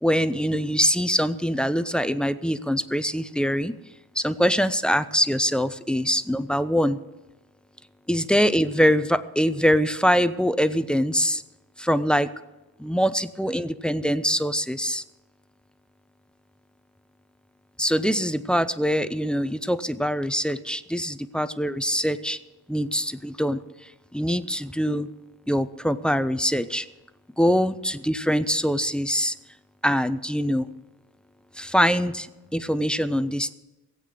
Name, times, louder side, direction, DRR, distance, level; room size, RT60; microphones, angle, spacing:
voice 1, 0.0-3.7 4.2-7.0 8.1-11.4 11.8-12.3 12.8-15.0 17.8-22.4 22.7-23.6 24.1-25.1 25.5-26.9 27.4-29.3 29.8-30.7 31.6-32.3 32.5-33.5, equal, 5° left, 14 dB, 0.5 m, -23 dB
17.0 x 8.4 x 7.5 m, 1.1 s
cardioid pair, 115°, 37 cm